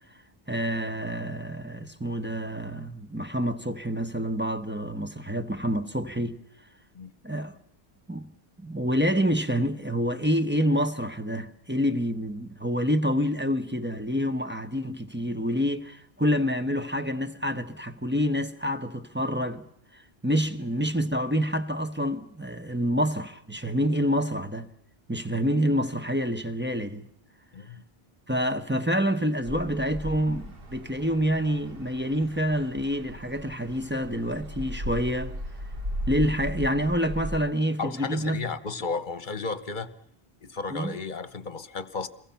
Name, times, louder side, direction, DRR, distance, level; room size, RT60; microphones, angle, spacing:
voice 1, 0.5-6.4 7.2-7.6 8.1-8.3 8.6-19.7 19.9-24.7 25.1-27.1 28.3-35.4 36.1-38.4 40.7-40.9, equal, 10° right, 1.1 m, -27 dB
voice 2, 27.5-27.8 37.8-39.9 40.4-42.1, left 4 dB, 50° left, 1.2 m, -33 dB
sound 1, 29.4-37.4, equal, 65° right, 1.9 m, -37 dB
28.0 x 22.5 x 5.7 m
omnidirectional pair, 1.0 m